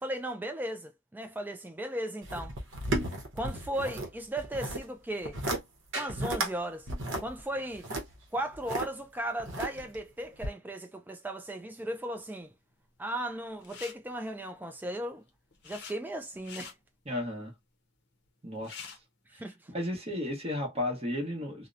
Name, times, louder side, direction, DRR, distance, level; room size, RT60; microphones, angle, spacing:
voice 1, 0.0-2.5 3.3-5.4 6.0-6.9 7.2-7.9 8.3-12.5 13.0-15.2 15.6-16.7 19.3-19.5, right 1 dB, 10° right, 0.3 m, -36 dB
sound 1, 2.2-4.1 4.4-4.8 5.2-5.6 5.9-6.5 6.9-8.9 9.4-10.0 10.4-10.5, right 2 dB, 60° right, 0.8 m, -33 dB
sound 2, 13.6-13.9 15.1-15.9 16.3-16.7 18.3-18.4 18.5-19.0, left 6 dB, 55° left, 0.6 m, -45 dB
voice 2, 17.1-17.5 18.4-18.9 19.7-21.7, left 1 dB, 30° right, 0.9 m, -34 dB
2.8 x 2.0 x 2.4 m
head